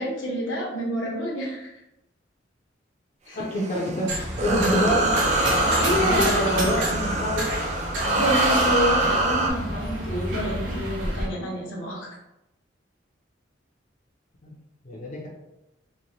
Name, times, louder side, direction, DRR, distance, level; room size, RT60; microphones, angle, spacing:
voice 1, 0.0-1.7 3.3-3.4 5.8-6.4 8.1-12.1, equal, 85° left, -3 dB, 0.8 m, -28 dB
voice 2, 3.3-4.1 4.4-5.2 6.0-7.6 14.4-14.5 14.8-15.3, equal, 40° left, -4 dB, 0.5 m, -26 dB
sound 1, 3.5-9.5, right 2 dB, 40° right, 0.4 m, -24 dB
sound 2, 4.1-11.3, equal, 90° right, 1.1 m, -29 dB
3.0 x 2.1 x 2.6 m, 0.88 s
head